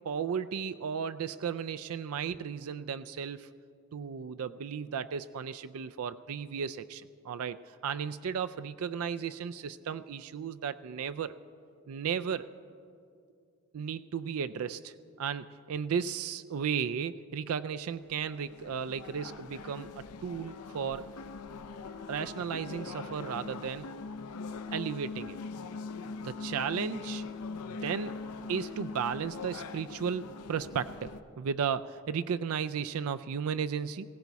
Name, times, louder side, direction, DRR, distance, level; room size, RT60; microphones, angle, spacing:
voice 1, 0.0-3.5 3.9-11.4 11.9-12.5 13.7-21.1 22.1-23.9 24.7-25.4 26.2-27.2 27.6-28.2 28.5-34.1, right 7 dB, 75° right, 11 dB, 0.4 m, -35 dB
sound 1, 18.1-31.2, left 4 dB, 85° left, 0.6 m, -42 dB
20.5 x 17.0 x 4.1 m, 2.4 s
head